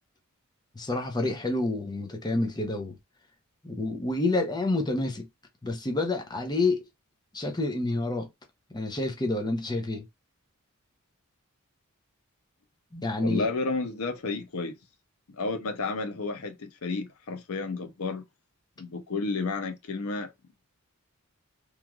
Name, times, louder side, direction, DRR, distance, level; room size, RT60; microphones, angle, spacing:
voice 1, 0.8-3.0 3.6-5.3 5.6-6.9 7.3-8.3 8.7-10.0 12.9-13.5, left 2 dB, 20° left, 0.7 m, -28 dB
voice 2, 13.2-14.8 15.3-18.2 18.8-20.3, left 3 dB, 75° left, 0.6 m, -31 dB
3.1 x 2.4 x 2.3 m
head